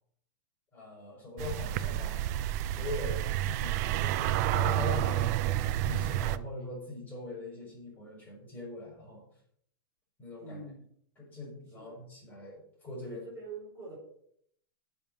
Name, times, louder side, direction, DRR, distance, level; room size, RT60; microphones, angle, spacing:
voice 1, 0.7-2.3 2.6-5.4 5.8-9.2 10.2-10.6 11.2-13.2, left 3 dB, 15° left, -4 dB, 6.1 m, -41 dB
sound 1, 1.4-6.4, right 13 dB, 45° right, 0.6 m, -30 dB
voice 2, 10.4-10.8 11.7-12.0 13.0-14.0, right 3 dB, 25° right, -4 dB, 5.4 m, -44 dB
8.8 x 7.2 x 7.6 m, 0.67 s
supercardioid pair, 150°, 12 cm